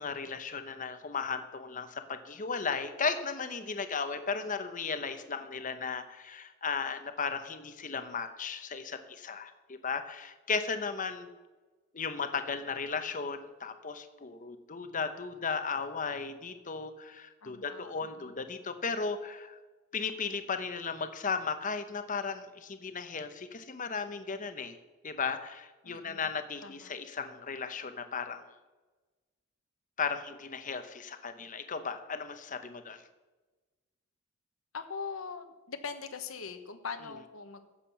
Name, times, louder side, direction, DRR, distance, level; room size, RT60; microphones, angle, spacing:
voice 1, 0.0-11.3 11.9-19.6 19.9-24.8 25.0-28.4 30.0-33.0, left 5 dB, 40° left, 9 dB, 0.9 m, -35 dB
voice 2, 17.4-18.4 25.8-26.3 26.6-26.9 34.7-37.7, left 5 dB, 70° left, 8 dB, 1.2 m, -42 dB
15.0 x 7.5 x 5.8 m, 1.2 s
head